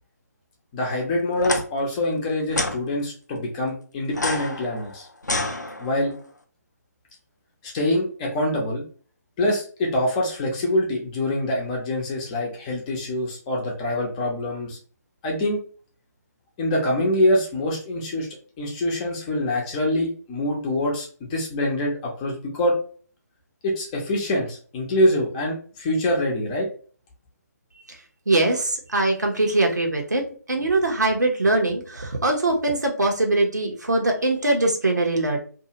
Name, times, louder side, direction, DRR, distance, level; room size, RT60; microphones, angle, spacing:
voice 1, 0.7-5.1 5.8-6.1 7.6-8.8 9.4-14.8 15.2-15.6 16.6-18.3 18.6-22.7 23.6-26.7, left 1 dB, 25° left, -1 dB, 0.8 m, -25 dB
sound 1, 1.4-1.6 2.5-2.8 4.1-6.1, left 2 dB, 90° left, 0.5 m, -28 dB
voice 2, 28.3-35.4, right 2 dB, 80° right, 2 dB, 1.0 m, -22 dB
2.7 x 2.4 x 2.8 m, 0.42 s
figure-of-eight pair, 145°, 9 cm